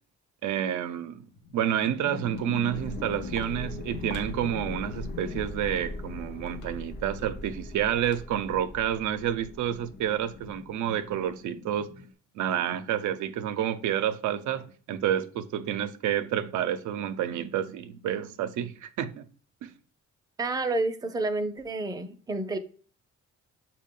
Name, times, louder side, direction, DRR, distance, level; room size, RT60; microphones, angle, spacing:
voice 1, 0.4-1.2 1.5-11.9 12.3-19.3 19.6-19.7, right 10 dB, 75° right, 0.5 m, -29 dB
sound 1, 1.1-7.5 9.4-12.1, left 6 dB, 70° left, 0.7 m, -43 dB
Walk footsteps, 2.1-8.6, left 1 dB, 85° left, 1.1 m, -51 dB
sound 2, 2.7-11.3, left 2 dB, 35° left, 0.6 m, -41 dB
voice 2, 20.4-22.6, right 2 dB, 15° right, 0.5 m, -29 dB
6.2 x 2.2 x 3.7 m
cardioid pair, 90°, 30 cm